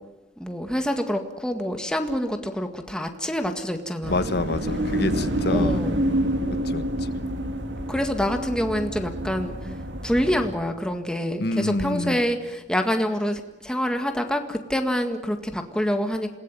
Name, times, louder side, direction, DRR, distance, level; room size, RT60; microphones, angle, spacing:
voice 1, 0.4-4.2 5.5-6.0 7.9-9.7 10.0-16.4, equal, 5° left, 5 dB, 1.8 m, -26 dB
sound 1, 4.0-10.5, right 1 dB, 80° right, 2.7 m, -27 dB
voice 2, 4.1-5.8 6.6-6.8 11.4-12.2, left 2 dB, 60° left, 11 dB, 1.5 m, -27 dB
27.5 x 19.0 x 9.2 m, 1.0 s
head